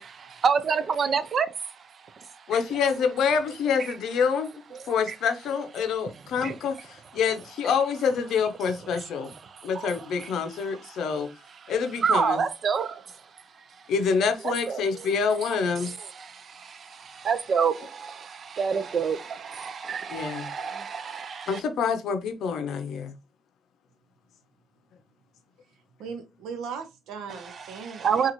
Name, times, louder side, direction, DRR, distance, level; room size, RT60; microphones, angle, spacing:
voice 1, 0.0-1.8 2.1-2.6 3.8-3.9 4.7-5.1 6.1-6.2 6.4-6.6 9.4-10.3 10.9-11.1 11.6-11.7 12.0-13.2 14.4-15.1 15.8-21.6 27.3-28.3, right 6 dB, 50° right, 0.5 m, -29 dB
voice 2, 2.5-4.5 4.9-9.3 9.6-11.3 11.7-12.4 13.9-15.9 20.1-20.5 21.5-23.1, left 6 dB, 75° left, 0.6 m, -26 dB
voice 3, 26.0-28.3, right 6 dB, 85° right, 0.7 m, -38 dB
3.9 x 2.4 x 2.9 m
cardioid pair, 90°, 0 cm